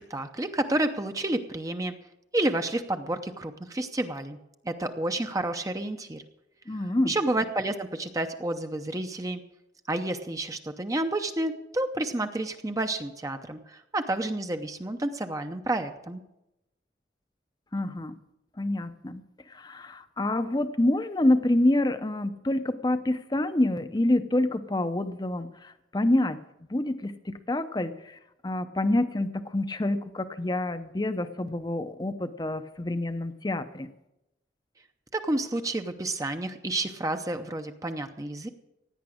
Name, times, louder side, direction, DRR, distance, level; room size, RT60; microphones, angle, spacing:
voice 1, 0.1-2.0 2.3-4.4 4.6-6.2 7.1-9.4 9.9-16.2 35.1-38.5, right 1 dB, 20° right, 7 dB, 0.6 m, -30 dB
voice 2, 6.7-7.1 17.7-18.2 18.6-19.2 19.5-26.4 26.7-33.9, left 1 dB, 20° left, 11 dB, 0.6 m, -27 dB
16.5 x 9.5 x 6.4 m, 0.90 s
head